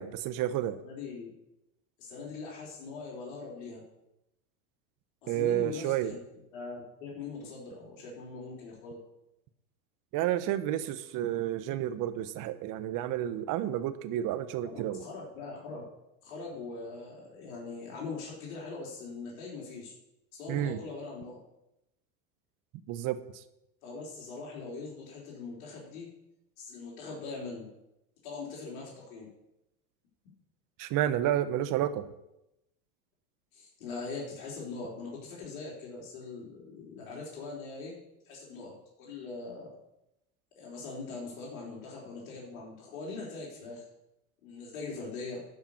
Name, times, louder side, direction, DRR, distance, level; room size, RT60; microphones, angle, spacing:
voice 1, 0.0-0.8 5.3-6.1 10.1-15.1 20.5-20.8 22.9-23.2 30.8-32.1, right 12 dB, 50° right, 12 dB, 1.0 m, -30 dB
voice 2, 0.8-1.3 2.0-3.8 5.2-6.2 6.5-9.0 14.6-15.8 16.2-19.9 20.3-21.4 23.8-26.1 26.6-27.7 28.2-29.3 33.5-38.0 38.3-39.7 40.6-43.9 44.4-45.4, left 4 dB, 70° left, -3 dB, 3.8 m, -41 dB
12.0 x 5.6 x 7.2 m, 0.88 s
hypercardioid pair, 105°, 42 cm